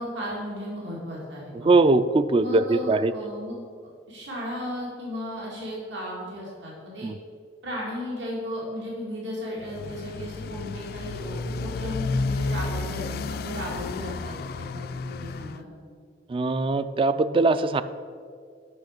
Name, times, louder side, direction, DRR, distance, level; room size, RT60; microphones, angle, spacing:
voice 1, 0.0-1.7 2.4-3.6 4.1-7.1 7.6-15.7, equal, 80° right, -4 dB, 2.2 m, -35 dB
voice 2, 1.5-3.1 7.0-7.2 16.3-17.8, right 3 dB, 30° right, 13 dB, 0.3 m, -21 dB
Motorcycle, 9.6-15.6, left 3 dB, 55° left, 0.4 m, -32 dB
8.4 x 6.0 x 6.6 m, 2.1 s
head